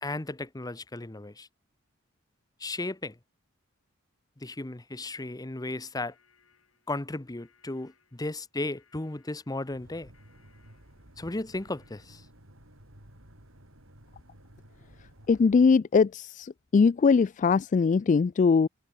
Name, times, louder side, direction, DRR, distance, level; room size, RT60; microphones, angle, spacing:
voice 1, 0.0-1.5 2.6-3.2 4.4-6.1 6.9-10.1 11.2-12.2, left 2 dB, 20° left, 0.9 m, -35 dB
sound 1, 6.0-12.0, left 6 dB, 85° left, 7.4 m, -67 dB
sound 2, 9.7-15.7, right 1 dB, 70° right, 7.5 m, -54 dB
voice 2, 15.3-18.7, left 5 dB, 35° left, 0.3 m, -21 dB
head